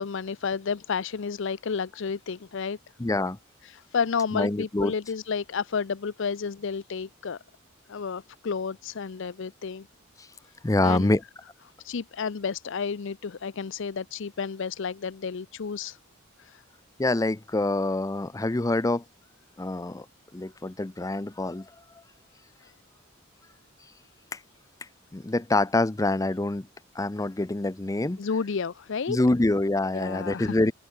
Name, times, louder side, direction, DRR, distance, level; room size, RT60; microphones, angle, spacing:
voice 1, 0.0-2.8 3.6-7.4 7.9-9.9 10.8-11.1 11.8-16.0 16.4-16.6 28.2-29.2 29.9-30.6, left 5 dB, 65° left, 0.5 m, -31 dB
voice 2, 3.0-3.4 4.3-4.9 10.2-10.3 10.6-11.2 17.0-19.0 19.6-20.1 20.3-21.7 24.3-24.4 25.1-26.7 26.9-28.2 29.1-30.7, left 2 dB, 15° left, 0.5 m, -26 dB
open air
head